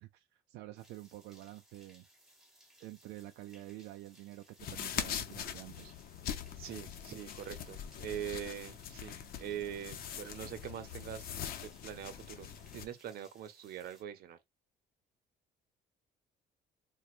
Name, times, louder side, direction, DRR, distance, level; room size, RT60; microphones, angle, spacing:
voice 1, 0.0-2.1 2.8-6.1, right 16 dB, 85° right, 0.4 m, -49 dB
sound 1, 0.8-14.0, right 1 dB, ahead, 1.3 m, -64 dB
sound 2, 4.6-12.9, left 9 dB, 60° left, 0.7 m, -42 dB
voice 2, 6.6-11.3 11.6-14.4, right 10 dB, 65° right, 0.8 m, -43 dB
4.3 x 2.3 x 2.4 m
cardioid pair, 110°, 17 cm